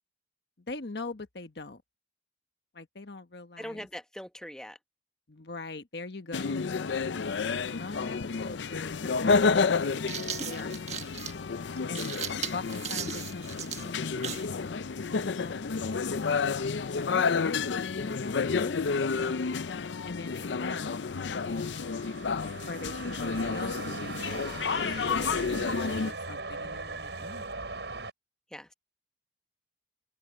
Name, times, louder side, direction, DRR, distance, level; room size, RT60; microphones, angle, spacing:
voice 1, 0.7-1.8 2.7-3.9 5.3-6.6 7.7-10.0 10.4-11.5 11.9-12.2 12.5-14.9 15.4-16.4 16.9-18.3 18.6-19.1 20.0-21.6 22.7-24.6 25.0-27.5, left 3 dB, 65° left, 1.3 m, -42 dB
voice 2, 3.6-4.8 28.5-28.7, equal, 5° left, 1.0 m, -41 dB
sound 1, 6.3-26.1, left 5 dB, 85° left, 0.5 m, -30 dB
sound 2, 8.7-8.8 9.8-14.5, right 7 dB, 40° right, 1.4 m, -37 dB
sound 3, 20.2-28.1, right 3 dB, 75° right, 5.5 m, -40 dB
open air
head